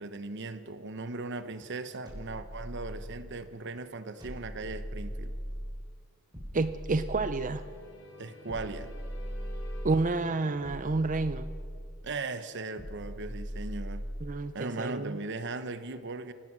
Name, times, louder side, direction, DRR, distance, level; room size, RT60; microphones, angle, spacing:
voice 1, 0.0-5.3 8.2-8.9 12.0-14.0 14.5-16.3, right 3 dB, 60° right, 11 dB, 1.0 m, -38 dB
sound 1, 2.1-3.4 4.2-5.8 6.3-7.8 8.5-10.1 10.6-12.0 12.8-14.4, equal, 20° right, 4.6 m, -39 dB
voice 2, 6.5-7.6 9.8-11.5 14.2-15.2, right 3 dB, 40° right, 11 dB, 0.6 m, -29 dB
sound 2, 7.2-11.9, left 1 dB, 90° left, 3.2 m, -52 dB
25.0 x 17.5 x 6.2 m, 2.1 s
head